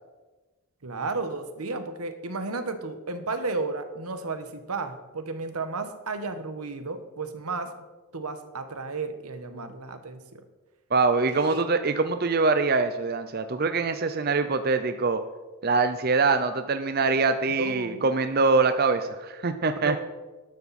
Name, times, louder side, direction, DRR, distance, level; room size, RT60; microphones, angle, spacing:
voice 1, 0.8-7.7 8.1-10.4 11.3-11.6 17.6-18.1 19.8-20.0, right 3 dB, 85° right, 9 dB, 1.3 m, -33 dB
voice 2, 10.9-15.2 15.6-20.0, right 4 dB, 45° right, 9 dB, 0.6 m, -24 dB
13.0 x 11.5 x 4.3 m, 1.2 s
head